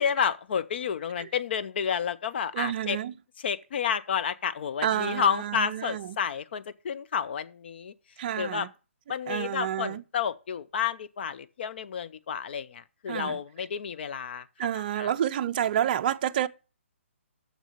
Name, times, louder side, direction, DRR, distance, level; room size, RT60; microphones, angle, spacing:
voice 1, 0.0-3.0 3.4-7.9 8.4-8.7 9.1-14.5 15.0-15.1, left 7 dB, 50° left, 0.6 m, -30 dB
voice 2, 2.5-3.1 4.8-6.2 8.2-8.7 9.3-10.0 13.1-13.4 14.6-16.5, right 10 dB, 40° right, 0.4 m, -29 dB
6.6 x 6.2 x 6.6 m
hypercardioid pair, 140°, 7 cm